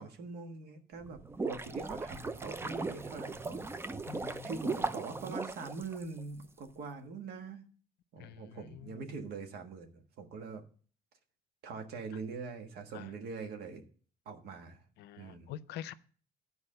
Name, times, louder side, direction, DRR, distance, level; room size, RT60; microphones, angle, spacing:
voice 1, 0.0-3.6 4.4-7.7 8.1-10.6 11.6-13.8 14.2-14.8 15.2-15.5, right 4 dB, 70° right, 6 dB, 1.5 m, -43 dB
sound 1, 1.0-6.4, right 3 dB, 15° right, 0.5 m, -38 dB
voice 2, 4.1-4.5 8.2-9.0 12.9-13.2 15.0-15.9, left 12 dB, 75° left, 15 dB, 0.5 m, -46 dB
11.0 x 4.7 x 6.6 m, 0.43 s
cardioid pair, 110°, 17 cm